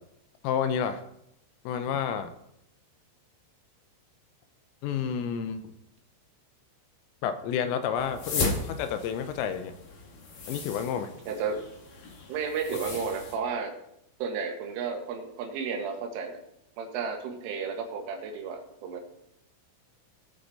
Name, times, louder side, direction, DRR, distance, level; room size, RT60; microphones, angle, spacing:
voice 1, 0.4-1.0 1.7-2.3 4.8-5.7 7.2-9.7 10.5-11.2, left 8 dB, 85° left, 9 dB, 3.3 m, -30 dB
sound 1, 8.0-13.4, left 3 dB, 55° left, 2.4 m, -36 dB
voice 2, 11.3-11.6 12.3-13.7 14.2-16.4 16.8-19.0, right 5 dB, 75° right, 3 dB, 3.9 m, -32 dB
19.0 x 6.8 x 4.1 m, 0.80 s
omnidirectional pair, 5.9 m